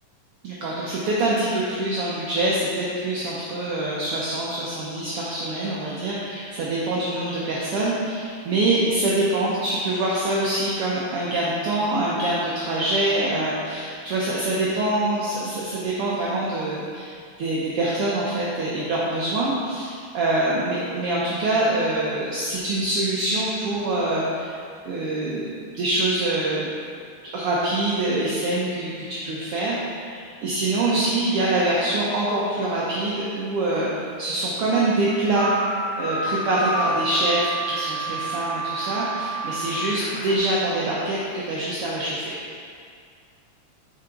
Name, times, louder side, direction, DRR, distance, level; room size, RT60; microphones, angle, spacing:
voice 1, 0.4-17.1 17.4-24.5 24.9-26.7 27.3-29.8 30.4-33.9 34.2-35.5 36.0-42.4, right 2 dB, 90° right, -7 dB, 1.2 m, -25 dB
sound 1, 35.3-40.4, right 2 dB, 75° left, 2.2 m, -29 dB
5.5 x 4.8 x 3.7 m, 2.2 s
omnidirectional pair, 3.5 m